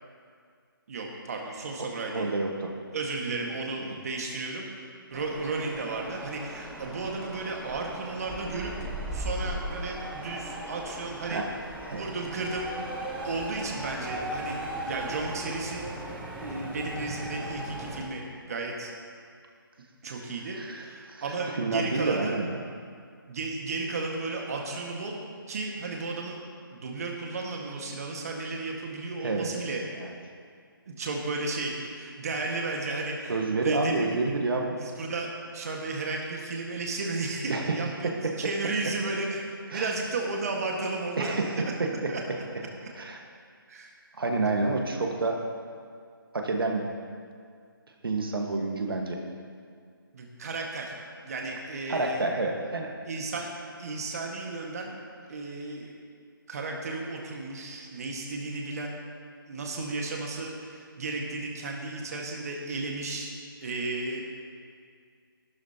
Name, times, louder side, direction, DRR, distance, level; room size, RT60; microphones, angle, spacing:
voice 1, 0.9-2.3 2.9-4.6 5.1-8.7 9.1-11.4 11.9-12.7 13.2-14.6 14.8-15.9 16.4-18.9 20.0-22.4 23.3-25.2 25.5-26.4 26.7-29.9 30.9-34.2 34.8-41.4 42.1-42.2 43.7-43.9 50.1-50.9 51.2-52.3 53.0-53.5 53.8-54.9 55.3-55.9 56.5-59.0 59.5-63.3 63.6-64.3, right 3 dB, 40° right, 0 dB, 1.6 m, -34 dB
voice 2, 1.8-2.7 11.2-11.5 11.8-12.1 20.5-21.2 21.6-22.6 29.2-29.5 30.0-30.1 33.3-34.7 37.5-37.7 38.0-38.3 39.7-39.9 41.2-42.1 43.0-43.2 44.2-45.4 46.3-46.9 48.0-49.2 51.9-52.9, right 3 dB, 70° right, 1 dB, 1.5 m, -29 dB
sound 1, 5.1-18.0, right 1 dB, 5° right, 0.8 m, -38 dB
14.5 x 12.5 x 2.9 m, 2.1 s
hypercardioid pair, 165°, 12 cm